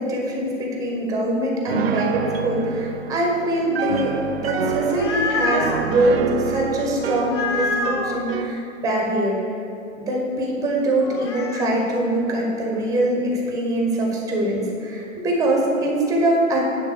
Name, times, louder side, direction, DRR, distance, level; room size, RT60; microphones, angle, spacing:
voice 1, 0.0-9.4 10.0-16.6, right 1 dB, 10° right, -1 dB, 1.4 m, -23 dB
Piano, 1.7-8.6, right 7 dB, 50° right, 0.5 m, -28 dB
sound 1, 4.7-5.8 7.2-8.2 11.0-11.7, left 3 dB, 20° left, 0.4 m, -26 dB
11.0 x 3.8 x 6.6 m, 2.8 s
figure-of-eight pair, 115°, 40 cm